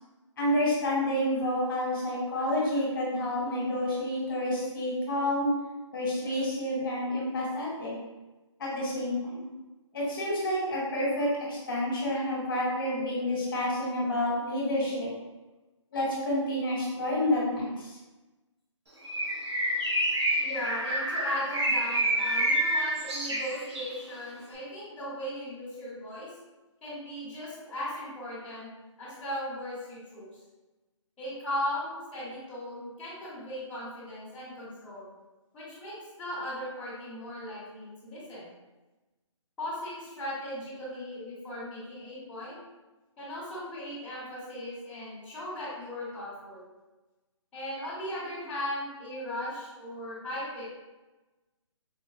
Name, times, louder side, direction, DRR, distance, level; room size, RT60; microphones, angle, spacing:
voice 1, 0.4-5.5 5.9-7.9 8.6-9.5 9.9-15.1 15.9-18.0, left 1 dB, 45° left, -4 dB, 1.0 m, -29 dB
Bird, 19.0-24.0, right 1 dB, 55° right, 0.8 m, -28 dB
voice 2, 20.4-26.3 26.8-28.7 29.0-30.3 31.2-35.1 35.5-38.5 39.6-42.6 43.2-46.7 47.5-50.6, left 1 dB, 5° left, -13 dB, 0.9 m, -37 dB
3.8 x 2.2 x 2.4 m, 1.1 s
figure-of-eight pair, 155°, 16 cm